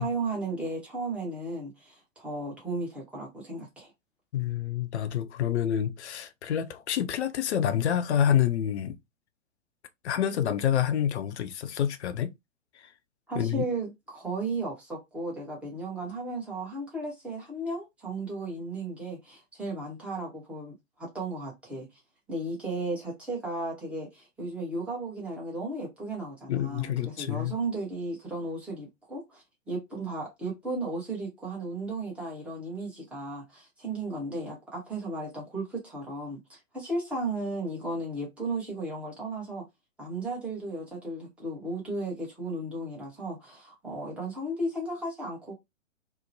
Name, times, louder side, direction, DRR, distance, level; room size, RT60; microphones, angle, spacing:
voice 1, 0.0-3.9 13.3-22.0 22.3-39.6 40.0-45.5, right 2 dB, 5° right, 0.8 m, -35 dB
voice 2, 4.3-9.0 10.0-12.3 13.3-13.6 26.5-27.6, left 9 dB, 55° left, 0.5 m, -27 dB
2.8 x 2.1 x 2.6 m
figure-of-eight pair, 120°, 39 cm